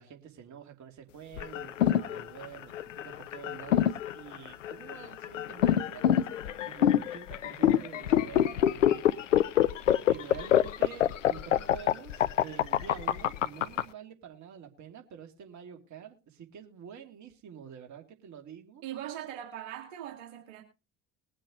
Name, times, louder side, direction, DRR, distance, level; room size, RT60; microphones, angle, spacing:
voice 1, 0.0-9.4 10.1-18.8, right 8 dB, 50° right, 3.0 m, -48 dB
sound 1, 1.4-13.8, left 11 dB, 90° left, 0.6 m, -25 dB
voice 2, 18.8-20.6, right 11 dB, 75° right, 2.4 m, -40 dB
21.0 x 7.6 x 3.1 m
hypercardioid pair, 60°, 36 cm